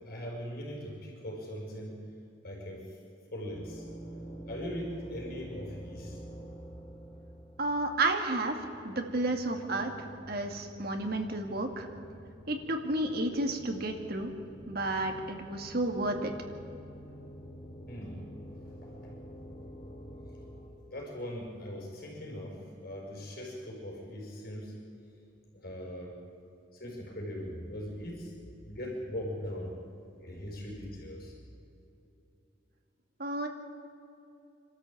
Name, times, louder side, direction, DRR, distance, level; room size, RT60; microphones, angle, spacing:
voice 1, 0.0-2.1 2.4-3.0 3.3-3.9 4.5-6.2 17.1-17.2 17.9-18.2 18.7-19.2 20.9-24.8 25.5-26.2 26.7-28.3 28.7-29.8 30.2-31.4, equal, 50° left, -1 dB, 5.5 m, -40 dB
sound 1, 3.5-20.7, right 1 dB, 25° left, 4.1 m, -48 dB
voice 2, 7.6-11.9 12.5-14.3 14.7-16.3 33.2-33.5, right 2 dB, 50° right, 4 dB, 2.2 m, -31 dB
26.0 x 13.0 x 8.7 m, 2.8 s
head